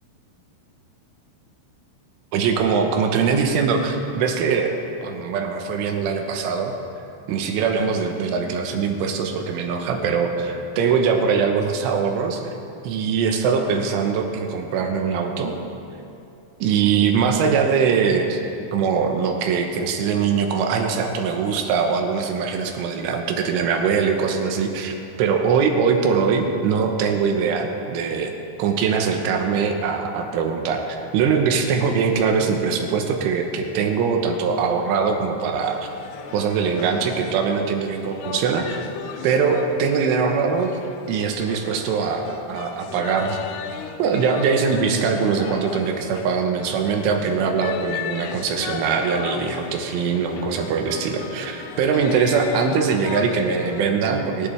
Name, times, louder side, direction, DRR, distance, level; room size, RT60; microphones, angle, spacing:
voice 1, 2.3-4.8 5.0-6.8 7.3-12.5 12.8-15.6 16.6-18.4 18.7-28.3 28.6-35.9 36.3-38.9 39.2-40.7 41.1-43.4 44.0-54.5, right 6 dB, 85° right, 4 dB, 3.5 m, -22 dB
sound 1, 35.6-53.9, left 8 dB, 85° left, 2.3 m, -36 dB
18.5 x 14.0 x 3.4 m, 2.8 s
omnidirectional pair, 5.6 m